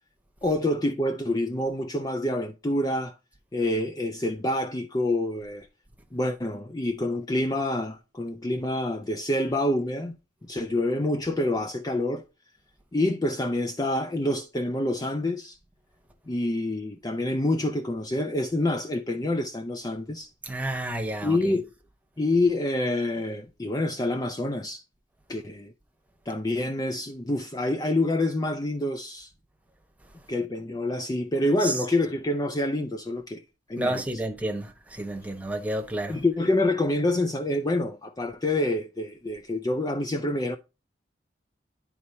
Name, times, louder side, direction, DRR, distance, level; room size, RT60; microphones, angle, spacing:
voice 1, 0.4-3.1 3.5-5.7 6.1-10.2 10.5-12.2 12.9-15.6 16.3-20.3 21.2-21.7 22.2-24.8 25.3-25.7 26.3-29.3 30.3-33.4 33.7-34.0 36.1-40.6, left 1 dB, 20° left, 0.5 m, -27 dB
voice 2, 20.4-21.5 31.6-31.7 33.8-36.2, right 1 dB, 10° right, 1.2 m, -30 dB
11.0 x 4.3 x 2.7 m
head